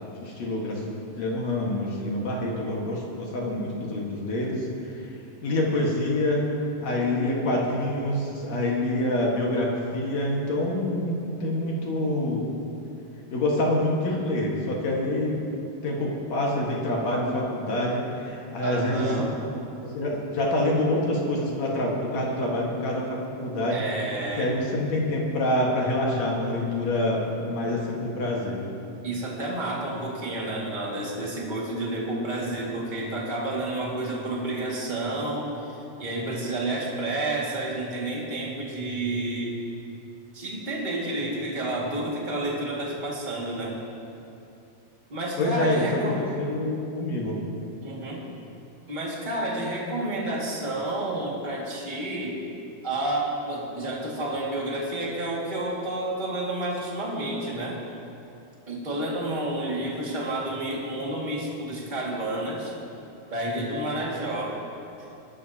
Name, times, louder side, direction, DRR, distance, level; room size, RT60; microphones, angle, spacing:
voice 1, 0.2-0.8 1.2-4.7 4.9-5.1 5.4-6.4 6.8-12.5 13.3-15.4 15.8-19.1 19.9-23.8 24.4-28.6 45.4-45.9 46.2-47.4, left 1 dB, 55° left, -3 dB, 2.5 m, -26 dB
voice 2, 18.6-19.3 23.7-24.5 29.0-39.6 40.3-43.8 45.1-46.3 47.8-48.3 48.9-52.4 52.8-57.8 58.7-62.7 63.3-64.6 65.0-65.1, right 1 dB, 20° right, -4 dB, 1.2 m, -30 dB
21.5 x 12.0 x 2.8 m, 2.7 s
omnidirectional pair, 4.0 m